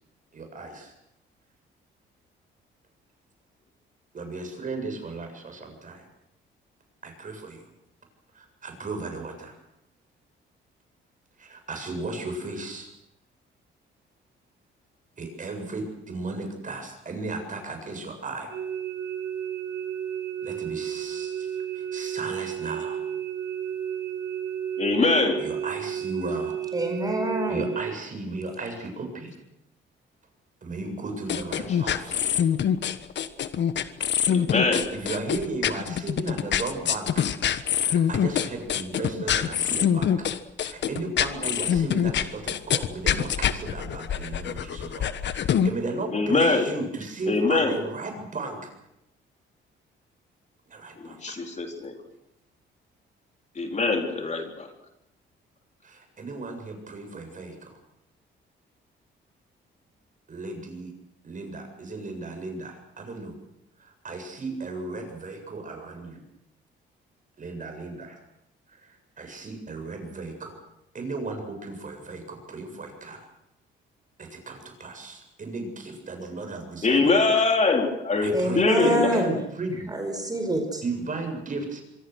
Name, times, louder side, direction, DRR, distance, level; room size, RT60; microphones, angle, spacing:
voice 1, 0.3-0.9 4.1-6.1 7.0-7.6 8.3-9.6 11.4-12.9 15.2-18.5 20.4-23.0 25.4-26.6 27.5-29.3 30.6-32.3 34.9-37.3 37.8-40.3 40.6-48.7 50.7-51.5 55.8-57.8 60.3-60.9 61.2-63.3 63.8-66.2 67.4-68.2 68.7-70.6 70.9-73.3 74.2-77.4 78.2-79.9 80.8-81.8, right 3 dB, 40° right, 5 dB, 7.8 m, -35 dB
sound 1, 18.5-27.9, right 9 dB, 70° right, 3.9 m, -32 dB
voice 2, 24.8-25.4 34.3-34.9 46.1-46.7 47.3-47.7 51.0-52.0 53.6-54.7 76.8-79.1, left 3 dB, 35° left, 3 dB, 4.1 m, -23 dB
voice 3, 26.7-27.7 78.3-79.4 79.9-80.8, equal, 20° right, 5 dB, 4.8 m, -26 dB
sound 2, 31.3-45.7, left 9 dB, 65° left, 1.4 m, -25 dB
25.5 x 23.0 x 6.4 m, 0.82 s
cardioid pair, 90°, 20 cm